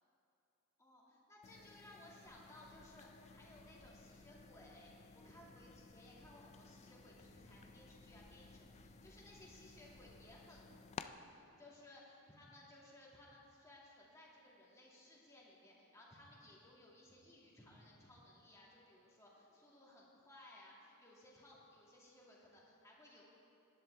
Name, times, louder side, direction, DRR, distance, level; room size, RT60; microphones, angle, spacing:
voice 1, 0.8-23.2, left 1 dB, 15° left, -5 dB, 2.1 m, -61 dB
sound 1, 1.4-11.1, left 5 dB, 30° left, 0.3 m, -57 dB
Bird, 2.2-11.1, right 1 dB, 80° right, 1.2 m, -67 dB
18.0 x 11.0 x 3.3 m, 2.7 s
head